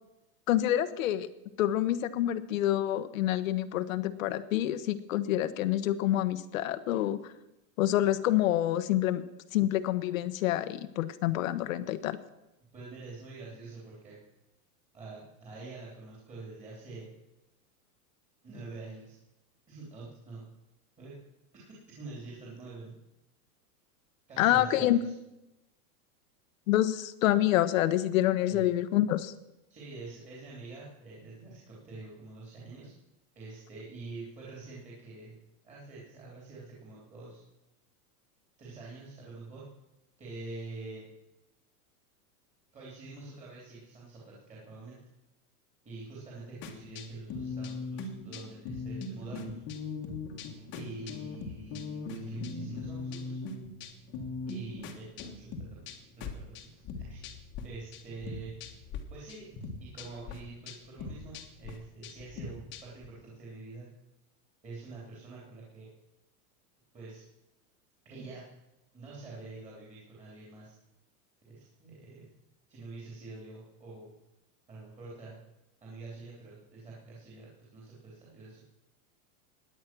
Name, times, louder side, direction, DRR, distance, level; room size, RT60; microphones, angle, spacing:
voice 1, 0.5-1.3 1.6-7.2 7.8-9.2 9.5-12.2 24.4-25.0 26.7-29.3, left 13 dB, 60° left, 13 dB, 1.1 m, -27 dB
voice 2, 12.7-14.2 14.9-17.1 18.4-19.1 19.7-20.4 21.0-21.1 21.5-22.9 24.3-25.1 28.5-28.6 29.7-32.9 33.3-35.3 35.6-37.4 38.6-39.6 40.2-41.1 42.7-45.0 45.8-49.6 50.7-53.4 54.5-55.8 56.1-57.3 57.6-59.5 59.8-63.9 64.6-65.9 66.9-67.2 68.0-68.4 68.9-70.7 71.5-72.2 72.7-74.1 74.7-75.3 75.8-78.6, right 3 dB, 15° right, -5 dB, 3.3 m, -46 dB
sound 1, 46.6-57.6 57.9-59.0 59.3-63.1, left 3 dB, 25° left, 1.5 m, -40 dB
17.0 x 10.5 x 6.0 m, 0.94 s
supercardioid pair, 175°, 46 cm